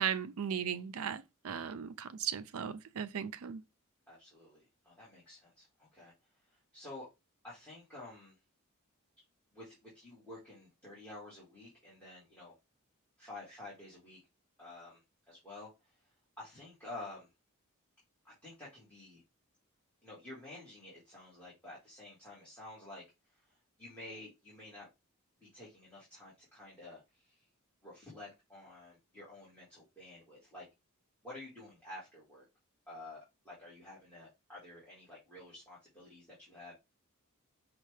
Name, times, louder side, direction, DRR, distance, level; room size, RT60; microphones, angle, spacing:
voice 1, 0.0-3.6, right 8 dB, 75° right, 0.5 m, -37 dB
voice 2, 4.1-6.1 6.4-7.1 7.4-8.4 9.5-12.5 13.2-14.2 14.6-15.7 16.0-16.1 16.4-17.3 18.2-19.2 20.0-24.9 25.4-27.4 27.8-30.6 31.2-32.5 32.9-36.7, left 2 dB, 5° left, 1.7 m, -51 dB
5.4 x 2.4 x 3.2 m
head